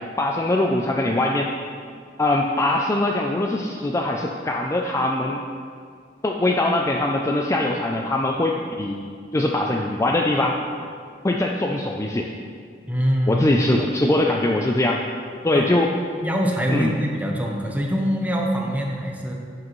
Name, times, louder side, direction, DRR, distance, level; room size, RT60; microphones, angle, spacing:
voice 1, 0.2-1.5 2.2-5.4 6.2-9.0 9.3-10.6 11.2-12.3 13.3-15.0 15.4-15.9 16.7-16.9, left 1 dB, 15° left, 1 dB, 0.4 m, -22 dB
voice 2, 12.8-13.5 15.5-15.7 16.2-19.3, equal, 10° right, -1 dB, 1.0 m, -24 dB
11.5 x 7.5 x 3.1 m, 2.1 s
head